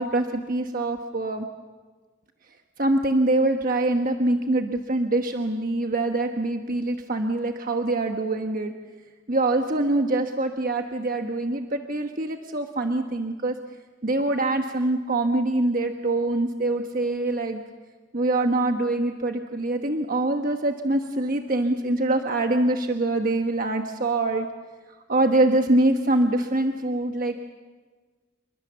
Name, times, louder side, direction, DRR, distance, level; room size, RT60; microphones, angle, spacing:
voice 1, 0.0-1.5 2.8-8.7 9.3-13.6 14.0-17.6 18.1-24.5 25.1-27.4, right 2 dB, 50° right, 5 dB, 1.2 m, -24 dB
27.5 x 22.5 x 7.1 m, 1.4 s
head